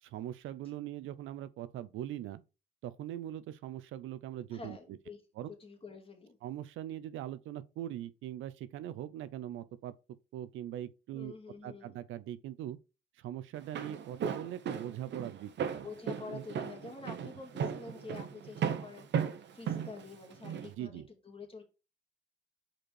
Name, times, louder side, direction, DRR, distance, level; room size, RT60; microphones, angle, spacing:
voice 1, 0.0-2.4 2.8-5.0 5.4-5.5 6.4-9.9 10.3-11.3 11.6-12.8 13.2-15.9 16.3-16.4 17.3-17.4 20.6-21.1, right 12 dB, 85° right, 0.6 m, -41 dB
voice 2, 4.5-5.2 5.5-6.4 11.1-12.0 15.8-21.6, left 4 dB, 30° left, 2.1 m, -48 dB
Walk footsteps, 13.5-20.7, right 7 dB, 65° right, 1.0 m, -36 dB
5.1 x 4.4 x 4.5 m
cardioid pair, 90°, 20 cm